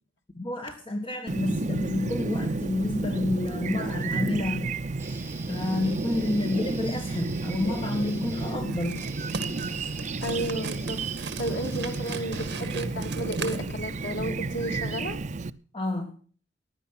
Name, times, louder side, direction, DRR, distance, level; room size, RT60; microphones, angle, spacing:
voice 1, 0.4-4.7 5.5-9.1 15.7-16.1, left 2 dB, 30° left, 4 dB, 1.6 m, -29 dB
Chirp tweet, 1.3-15.5, right 3 dB, 40° right, 0.5 m, -32 dB
Guitar, 5.0-13.0, right 4 dB, 15° right, 2.9 m, -45 dB
sound 1, 8.7-14.3, right 4 dB, 65° right, 1.7 m, -38 dB
voice 2, 10.2-15.2, right 1 dB, 80° left, 3 dB, 2.8 m, -33 dB
15.5 x 10.5 x 5.8 m, 0.43 s
head